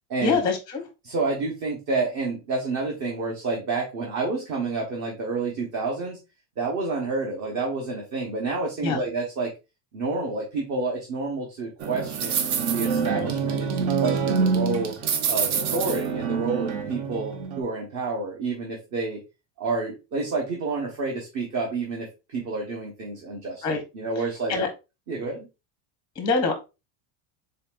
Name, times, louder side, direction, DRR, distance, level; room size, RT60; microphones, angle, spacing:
voice 1, 0.2-0.9 8.8-9.0 13.0-13.3 23.6-23.8 24.2-24.7 26.1-26.5, left 4 dB, 10° left, 4 dB, 0.6 m, -25 dB
voice 2, 1.0-6.2 6.6-9.5 9.9-12.5 12.7-14.9 15.3-19.2 19.6-23.6 23.9-24.7 25.1-25.5, right 3 dB, 40° right, -1 dB, 1.1 m, -29 dB
sound 1, 11.8-17.6, right 6 dB, 60° right, 0.9 m, -26 dB
4.1 x 3.9 x 2.4 m, 0.27 s
cardioid pair, 155°, 44 cm